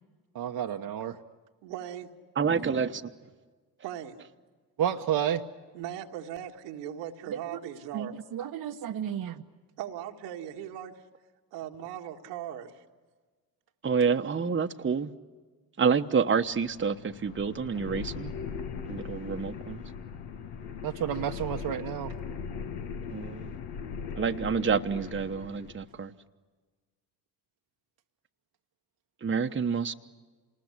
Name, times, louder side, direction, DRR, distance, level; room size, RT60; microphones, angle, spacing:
voice 1, 0.3-1.2 4.8-5.4 7.5-7.6 7.9-9.4 20.8-22.1, right 10 dB, 50° right, 3 dB, 1.1 m, -31 dB
voice 2, 1.6-2.1 3.8-4.2 5.7-8.1 9.8-11.0 11.5-12.8, right 10 dB, 80° right, 3 dB, 1.8 m, -39 dB
voice 3, 2.4-3.1 13.8-15.1 15.8-18.3 18.9-19.8 23.1-23.4 24.2-26.1 29.2-29.9, right 6 dB, 25° right, 6 dB, 1.2 m, -28 dB
sound 1, 16.3-25.9, left 6 dB, 65° left, 1.5 m, -39 dB
27.5 x 20.0 x 9.8 m, 1.4 s
hypercardioid pair, 55°, 46 cm